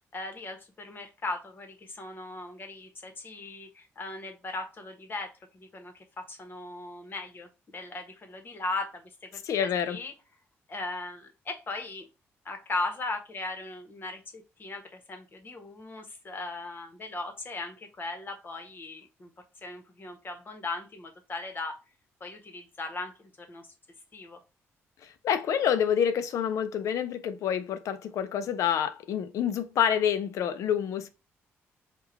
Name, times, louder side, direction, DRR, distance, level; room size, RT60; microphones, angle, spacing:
voice 1, 0.1-10.1 10.7-12.1 12.4-19.3 19.6-21.8 22.2-23.7 24.1-24.4, left 2 dB, 40° left, 1.2 m, -38 dB
voice 2, 9.4-10.0 25.0-31.1, left 8 dB, 75° left, 0.6 m, -27 dB
3.6 x 2.5 x 4.5 m
cardioid pair, 75°, 5 cm